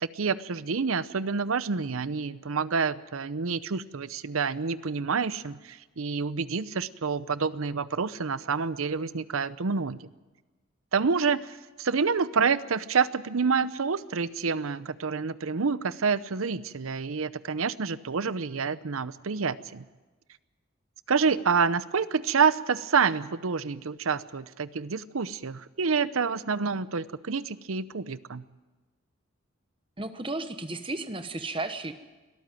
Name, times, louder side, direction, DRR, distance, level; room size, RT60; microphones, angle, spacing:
voice 1, 0.0-10.1 10.9-19.8 21.1-28.4, right 5 dB, 85° right, 16 dB, 0.7 m, -28 dB
voice 2, 30.0-31.9, right 2 dB, 25° right, 9 dB, 1.1 m, -33 dB
22.0 x 14.0 x 9.2 m, 1.2 s
head